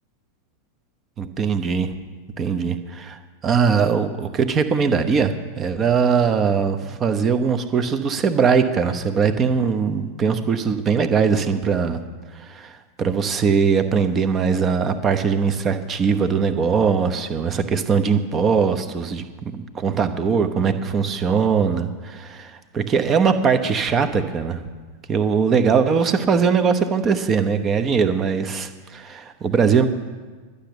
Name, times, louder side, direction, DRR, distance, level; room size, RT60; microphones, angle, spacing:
voice 1, 1.2-1.9 2.4-12.0 12.3-24.6 25.1-29.9, right 6 dB, 25° right, 10 dB, 1.0 m, -21 dB
11.5 x 6.9 x 9.7 m, 1.4 s
figure-of-eight pair, 90°, 0 cm